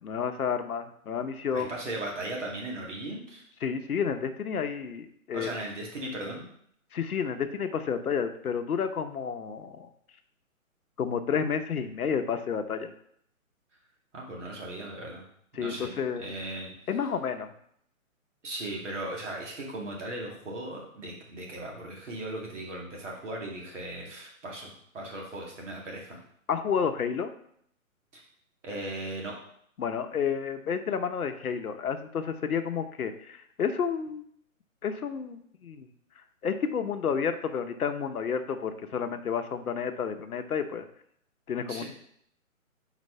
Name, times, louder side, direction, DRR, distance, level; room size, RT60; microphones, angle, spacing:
voice 1, 0.0-1.7 3.6-5.6 6.9-9.9 11.0-12.9 15.5-16.3 16.9-17.5 26.5-27.3 29.8-34.2 34.8-35.9 36.4-40.9 41.5-41.8, left 6 dB, 90° left, 8 dB, 0.9 m, -30 dB
voice 2, 1.5-3.4 5.3-6.5 14.1-15.2 15.5-15.9 16.2-16.7 18.4-26.2 28.1-28.2 28.6-29.4 41.7-41.8, right 1 dB, 55° right, -1 dB, 2.1 m, -37 dB
4.5 x 4.2 x 5.5 m, 0.68 s
hypercardioid pair, 170°, 42 cm